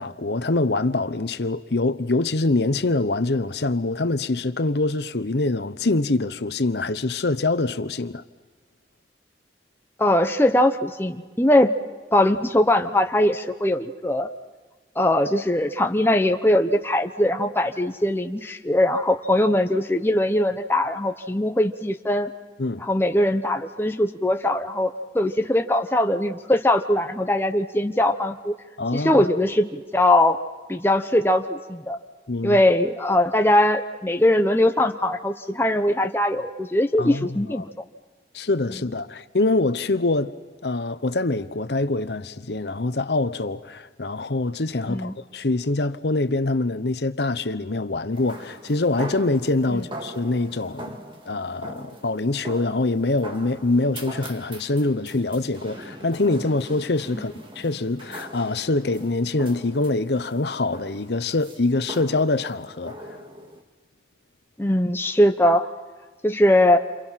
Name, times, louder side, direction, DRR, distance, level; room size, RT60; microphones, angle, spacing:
voice 1, 0.0-8.2 22.6-22.8 28.8-29.3 32.3-32.6 37.0-37.6 38.3-40.4 40.6-51.0 51.3-63.2, left 2 dB, 70° left, 1.0 m, -24 dB
voice 2, 10.0-11.7 12.1-14.3 15.0-22.3 22.8-28.5 28.9-30.4 30.7-32.0 32.4-37.7 44.9-45.2 49.7-49.8 57.1-57.3 64.6-65.7 66.2-66.8, left 1 dB, 15° left, 0.9 m, -21 dB
sound 1, 48.1-63.6, right 1 dB, 30° right, 1.9 m, -41 dB
29.0 x 28.0 x 5.8 m
head